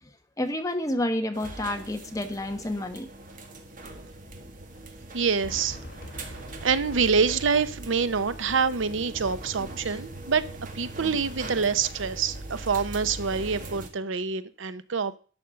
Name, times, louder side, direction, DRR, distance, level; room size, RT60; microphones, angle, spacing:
voice 1, 0.4-3.1 9.8-10.0, left 1 dB, 15° left, 6 dB, 1.2 m, -29 dB
sound 1, 1.3-13.9, right 2 dB, 45° right, 1.8 m, -41 dB
voice 2, 5.1-5.8 6.2-6.4 6.6-10.5 10.7-15.2, right 5 dB, 70° right, 14 dB, 0.7 m, -26 dB
Fireworks, 5.4-10.5, left 1 dB, 45° left, 2.8 m, -46 dB
11.5 x 5.3 x 7.6 m, 0.39 s
head